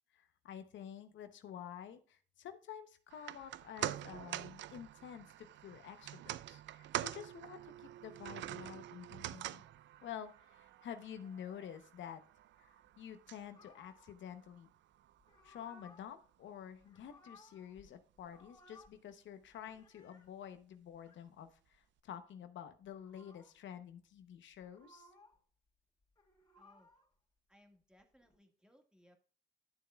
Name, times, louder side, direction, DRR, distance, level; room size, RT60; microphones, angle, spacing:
voice 1, 0.1-9.6 10.0-12.2 12.6-14.7 15.4-25.1, left 9 dB, 70° left, 10 dB, 0.8 m, -50 dB
sound 1, 3.1-15.5 15.8-15.9, right 13 dB, 65° right, 0.4 m, -46 dB
sound 2, 13.5-14.1 15.2-16.1 16.7-17.9 18.2-19.0 19.4-20.3 20.9-21.2 22.7-23.6 24.5-25.4 26.0-27.1 28.0-28.4, left 2 dB, 20° left, 3.1 m, -62 dB
voice 2, 26.5-27.0 27.5-29.2, equal, 5° right, 4 dB, 1.7 m, -67 dB
11.0 x 6.9 x 2.3 m, 0.41 s
cardioid pair, 90°, 20 cm